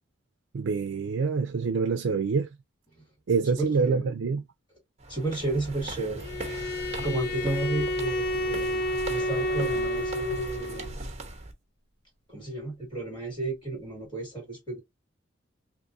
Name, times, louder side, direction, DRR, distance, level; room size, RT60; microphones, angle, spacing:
voice 1, 0.5-2.5 3.3-4.4, right 5 dB, 80° right, 0.4 m, -26 dB
voice 2, 3.4-4.1 5.1-6.2 7.0-8.8 9.1-10.9 12.3-14.8, right 2 dB, 25° left, 2.0 m, -32 dB
sound 1, 5.0-11.5, right 2 dB, 35° right, 1.0 m, -39 dB
Bowed string instrument, 6.2-10.9, equal, 55° left, 0.7 m, -30 dB
3.6 x 2.9 x 2.6 m
head